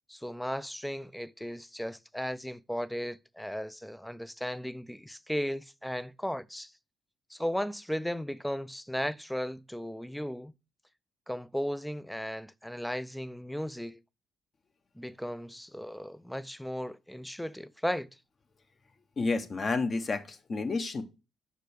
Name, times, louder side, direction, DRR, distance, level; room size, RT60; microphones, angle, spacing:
voice 1, 0.1-6.7 7.3-10.5 11.3-14.0 14.9-18.1, equal, 5° left, 0.4 m, -36 dB
voice 2, 19.2-21.0, left 3 dB, 40° left, 1.0 m, -30 dB
5.6 x 5.0 x 6.6 m
cardioid pair, 90°, 0 cm